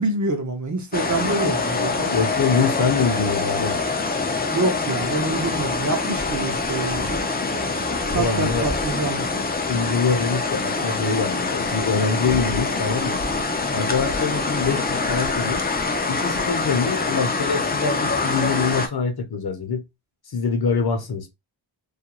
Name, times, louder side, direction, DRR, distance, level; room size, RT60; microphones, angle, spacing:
voice 1, 0.0-2.1 4.5-7.3 8.1-9.3, right 2 dB, 40° right, 0.6 m, -26 dB
sound 1, 0.9-18.9, left 3 dB, 20° left, 0.3 m, -25 dB
voice 2, 2.1-3.8 8.1-8.7 9.7-13.2 13.7-15.7 16.1-19.8 20.3-21.3, left 5 dB, 50° left, 0.7 m, -24 dB
2.4 x 2.2 x 2.9 m
wide cardioid pair, 95°, 48 cm